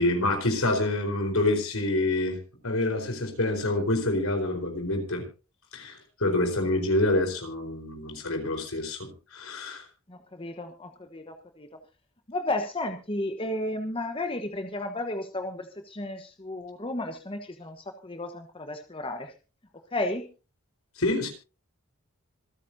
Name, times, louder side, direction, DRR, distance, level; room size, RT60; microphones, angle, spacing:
voice 1, 0.0-5.2 5.7-9.8 21.0-21.3, left 2 dB, 75° left, 5 dB, 4.4 m, -27 dB
voice 2, 10.1-11.7 12.3-19.3 19.9-20.3, left 1 dB, 25° left, 6 dB, 1.3 m, -33 dB
26.0 x 9.4 x 2.7 m, 0.32 s
head